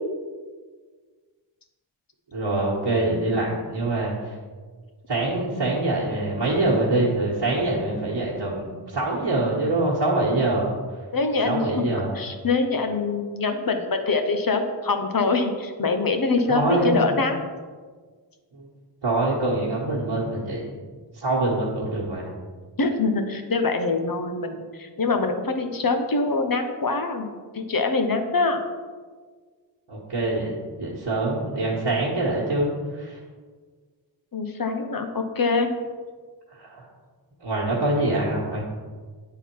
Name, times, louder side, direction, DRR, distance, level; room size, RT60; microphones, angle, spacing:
voice 1, 2.3-4.3 5.1-10.7 11.4-12.1 16.5-17.1 18.5-18.7 19.0-20.8 21.1-22.3 29.9-33.2 36.6-36.9 37.4-38.6, right 2 dB, 70° right, -7 dB, 1.4 m, -24 dB
voice 2, 11.1-11.8 12.1-17.4 22.8-27.3 27.5-28.6 34.3-35.7, left 3 dB, 50° left, 6 dB, 0.9 m, -24 dB
9.1 x 3.9 x 4.6 m, 1.5 s
wide cardioid pair, 65°, 44 cm